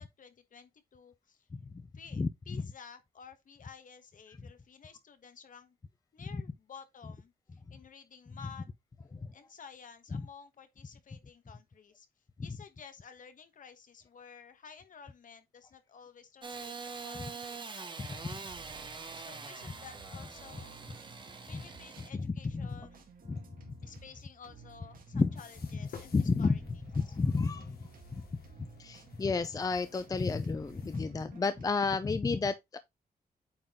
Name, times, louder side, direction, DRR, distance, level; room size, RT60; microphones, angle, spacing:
voice 1, 0.0-1.5 1.9-5.8 6.1-8.7 9.3-12.1 12.4-18.6 19.2-20.8 21.4-23.1 23.8-26.6 27.0-27.2, left 6 dB, 55° left, 1.3 m, -53 dB
voice 2, 1.5-1.9 2.2-2.6 9.1-9.3 18.0-18.1 21.5-21.6 22.1-22.7 23.3-23.4 25.1-25.3 26.1-26.6 27.0-27.8 28.1-28.2 28.6-32.8, left 4 dB, 20° left, 0.5 m, -31 dB
Engine starting / Sawing, 16.4-22.1, right 4 dB, 30° right, 1.2 m, -44 dB
sound 1, 18.1-31.7, right 4 dB, 60° right, 1.9 m, -55 dB
sound 2, 25.4-31.0, left 6 dB, 75° left, 2.1 m, -54 dB
8.7 x 3.8 x 3.7 m
wide cardioid pair, 135°, 16 cm